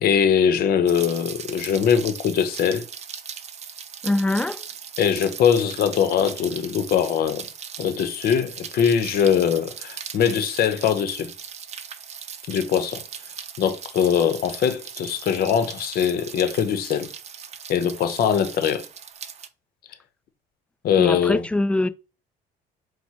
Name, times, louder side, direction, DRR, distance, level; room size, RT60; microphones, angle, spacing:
voice 1, 0.0-2.8 5.0-7.5 7.8-11.3 12.5-13.0 13.6-17.1 17.7-18.8 20.8-21.5, left 8 dB, 65° left, 0.8 m, -22 dB
Rain, 0.9-19.5, right 7 dB, 40° right, 0.6 m, -38 dB
voice 2, 4.0-4.6 21.0-21.9, left 2 dB, 5° left, 0.4 m, -23 dB
4.5 x 2.1 x 4.3 m
cardioid pair, 110°, 17 cm